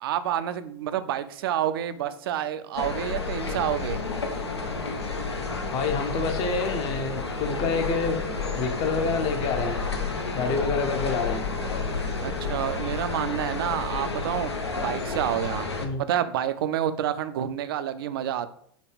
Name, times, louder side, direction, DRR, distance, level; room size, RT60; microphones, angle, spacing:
voice 1, 0.0-4.0 12.2-14.5 14.8-15.7 16.1-18.5, right 10 dB, 60° right, 12 dB, 0.4 m, -28 dB
sound 1, 2.7-15.9, left 4 dB, 85° left, 0.6 m, -30 dB
voice 2, 5.7-8.2 8.6-9.8 10.3-11.4 15.8-16.0, left 4 dB, 35° left, 6 dB, 0.7 m, -27 dB
5.0 x 2.2 x 3.3 m, 0.64 s
figure-of-eight pair, 90°, 14 cm